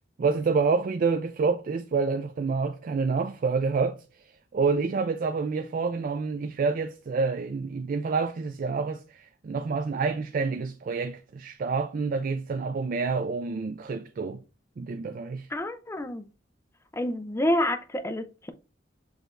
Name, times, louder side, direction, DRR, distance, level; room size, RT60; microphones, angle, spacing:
voice 1, 0.2-14.4 14.8-15.5, right 4 dB, 45° right, 0.3 m, -28 dB
voice 2, 15.5-16.2 16.9-18.5, left 1 dB, 15° left, 0.5 m, -28 dB
6.3 x 3.3 x 2.5 m
head